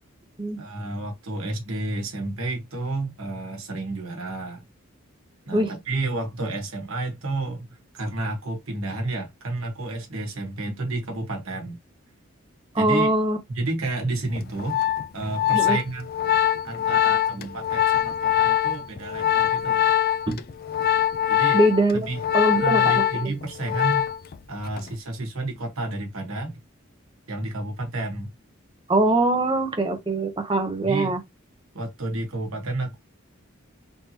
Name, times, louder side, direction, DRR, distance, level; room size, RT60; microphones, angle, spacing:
voice 1, 0.6-4.7 5.5-7.7 7.9-11.8 12.7-13.1 13.5-14.8 15.1-16.1 16.6-19.8 21.3-21.6 21.9-22.2 22.5-24.1 24.5-26.6 27.3-28.3 30.8-31.2 31.7-33.0, right 2 dB, 75° right, 1.2 m, -31 dB
voice 2, 12.7-13.4 15.5-15.8 20.3-20.4 21.5-22.1 22.3-23.3 28.9-31.2, right 1 dB, 25° right, 0.8 m, -22 dB
Organ, 14.4-24.4 24.6-25.0, left 11 dB, 45° left, 0.3 m, -23 dB
3.4 x 2.9 x 2.8 m
head